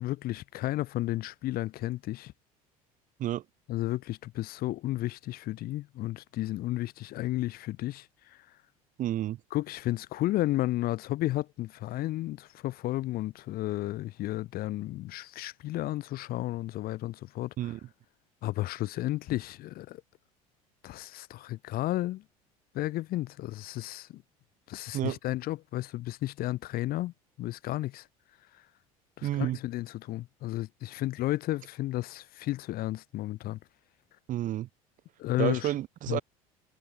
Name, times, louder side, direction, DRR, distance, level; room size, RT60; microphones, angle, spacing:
voice 1, 0.0-2.3 3.7-8.4 9.5-17.7 18.4-20.0 20.8-22.2 22.7-24.2 24.7-28.1 29.2-33.6 35.2-35.7 36.1-36.2, left 16 dB, 55° left, 1.1 m, -33 dB
voice 2, 9.0-9.4 17.6-17.8 24.9-25.2 29.2-29.6 34.3-34.7 35.4-36.2, right 13 dB, 45° right, 0.7 m, -30 dB
hypercardioid pair, 70°, 19 cm